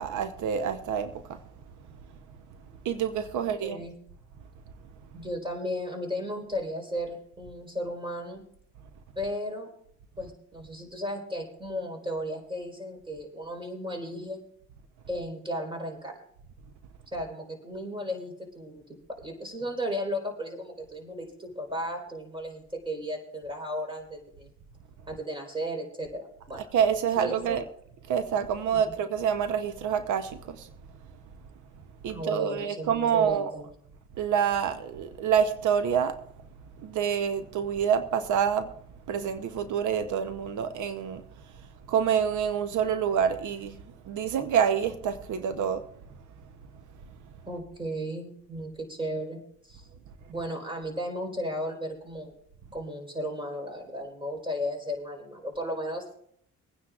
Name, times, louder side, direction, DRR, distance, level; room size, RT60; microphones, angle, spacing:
voice 1, 0.0-1.4 2.8-3.8 26.6-27.6 28.1-30.7 32.0-33.5 34.2-36.2 36.8-38.7 39.1-41.2 41.9-43.8 44.0-45.8, right 8 dB, 75° right, 0.8 m, -27 dB
voice 2, 3.6-3.9 5.1-8.4 9.2-9.7 10.2-14.4 15.1-16.2 17.1-18.8 19.1-24.5 25.1-26.6 27.2-27.6 28.7-28.9 32.1-33.7 47.5-49.9 50.3-52.3 52.7-56.1, equal, 15° right, 4.2 m, -35 dB
24.0 x 9.7 x 2.4 m
cardioid pair, 90°, 30 cm